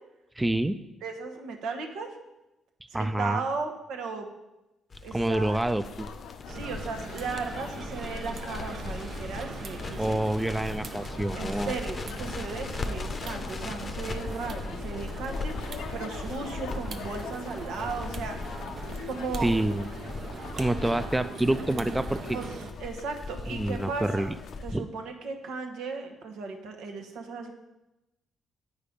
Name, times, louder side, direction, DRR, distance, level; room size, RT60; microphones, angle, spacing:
voice 1, 0.4-0.8 2.9-3.4 5.1-6.1 10.0-11.7 19.4-19.9 20.5-22.4 23.5-24.4 24.7-24.9, right 1 dB, 10° right, 11 dB, 0.3 m, -27 dB
voice 2, 1.0-2.1 3.0-4.3 5.0-5.6 6.5-10.2 11.3-18.4 19.1-19.5 22.3-22.5 22.8-24.3 24.6-27.5, right 4 dB, 85° right, 4 dB, 1.0 m, -36 dB
Crackle, 4.9-24.7, left 3 dB, 35° left, 0.6 m, -39 dB
sound 1, 5.8-24.6, left 8 dB, 80° left, 0.5 m, -45 dB
sound 2, 6.5-22.7, right 4 dB, 55° right, 0.7 m, -41 dB
8.3 x 4.9 x 5.1 m, 0.98 s
cardioid pair, 90°, 0 cm